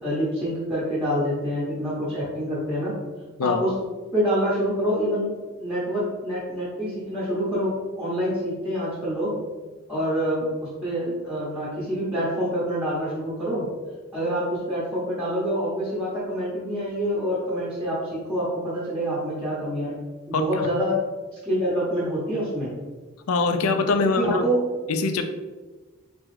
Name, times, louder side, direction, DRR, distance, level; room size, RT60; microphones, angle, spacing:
voice 1, 0.0-2.9 3.4-3.7 4.1-5.3 5.6-7.7 8.0-9.4 9.9-13.7 14.1-19.9 20.3-20.9 21.4-22.7 24.2-24.6, equal, 5° right, -9 dB, 0.8 m, -26 dB
voice 2, 20.3-20.7 23.3-24.4 24.9-25.2, left 3 dB, 80° left, 7 dB, 0.4 m, -23 dB
3.5 x 3.0 x 3.1 m, 1.3 s
head